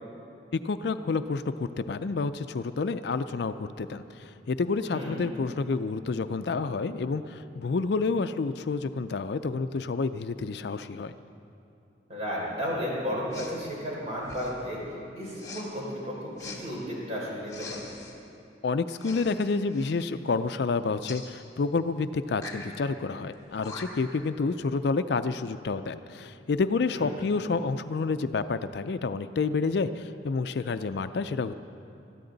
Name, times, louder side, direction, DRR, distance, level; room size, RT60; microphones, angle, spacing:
voice 1, 0.6-11.1 18.6-31.5, left 4 dB, 60° left, 11 dB, 0.4 m, -29 dB
voice 2, 4.9-5.3 12.1-14.8 15.2-17.9 26.9-27.3, equal, 35° right, -5 dB, 4.4 m, -33 dB
Respiratory sounds, 13.3-13.6 14.2-14.7 15.4-15.7 16.4-16.6 17.5-18.2 19.0-19.4 19.7-20.0 21.1-21.3 22.3-22.7 23.3-23.4 23.6-24.1, left 4 dB, 20° left, 1.7 m, -42 dB
21.0 x 14.0 x 3.9 m, 2.7 s
head